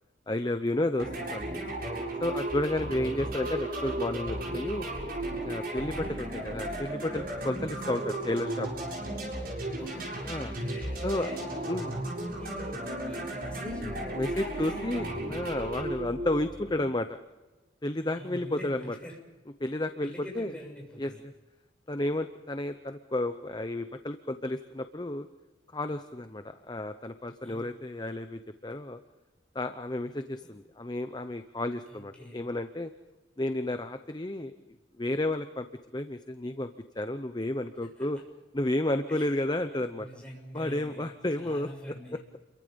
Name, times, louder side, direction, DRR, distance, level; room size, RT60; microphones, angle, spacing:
voice 1, 0.3-1.6 2.2-4.9 5.3-8.7 10.3-10.5 11.0-11.3 11.7-11.9 14.2-17.2 17.8-18.9 19.6-20.5 21.0-21.3 21.9-25.3 25.7-29.0 29.5-32.9 33.4-34.5 35.0-35.7 35.9-36.7 37.0-38.2 38.5-40.1 40.5-41.7, left 1 dB, 20° left, 8 dB, 0.8 m, -32 dB
sound 1, 1.0-16.9, right 1 dB, 50° right, 7.4 m, -35 dB
voice 2, 2.6-3.3 9.7-11.4 11.8-12.0 12.4-15.3 18.1-19.2 20.0-21.2 27.4-27.7 30.4-30.5 31.9-32.4 38.0-38.1 39.1-39.4 40.0-42.2, equal, 5° left, -1 dB, 6.8 m, -45 dB
29.5 x 23.5 x 5.3 m, 1.2 s
head